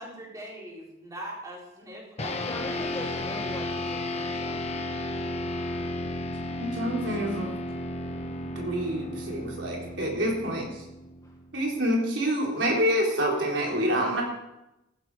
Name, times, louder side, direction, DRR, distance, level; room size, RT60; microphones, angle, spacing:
voice 1, 0.0-3.0, right 1 dB, 20° right, -3 dB, 4.3 m, -42 dB
sound 1, 2.2-11.8, left 1 dB, 35° left, 1.1 m, -34 dB
voice 2, 2.4-4.7 11.2-11.3, left 1 dB, 20° left, -1 dB, 1.3 m, -40 dB
voice 3, 6.6-7.5 8.6-10.7 11.5-14.2, equal, 90° right, -1 dB, 3.9 m, -27 dB
14.5 x 12.0 x 4.9 m, 0.92 s
head